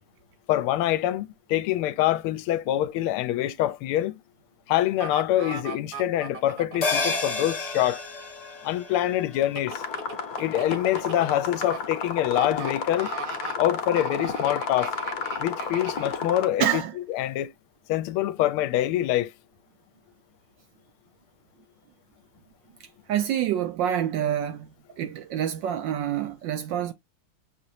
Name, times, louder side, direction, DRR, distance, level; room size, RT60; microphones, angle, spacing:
voice 1, 0.5-4.2 4.7-8.0 8.6-9.8 10.4-13.1 13.6-14.9 15.4-17.5 17.9-19.3, left 13 dB, 80° left, 1.4 m, -25 dB
sound 1, 5.0-7.0 9.4-11.8 12.3-12.7 13.0-13.5 14.0-16.1 16.7-16.8, right 5 dB, 50° right, 1.2 m, -38 dB
sound 2, 6.8-11.5 11.8-11.9, left 3 dB, 25° left, 0.8 m, -32 dB
sound 3, 9.7-16.5, left 6 dB, 60° left, 1.1 m, -32 dB
voice 2, 16.6-16.9 23.1-24.7 25.0-26.9, right 10 dB, 75° right, 1.1 m, -27 dB
6.4 x 2.9 x 2.7 m
omnidirectional pair, 2.4 m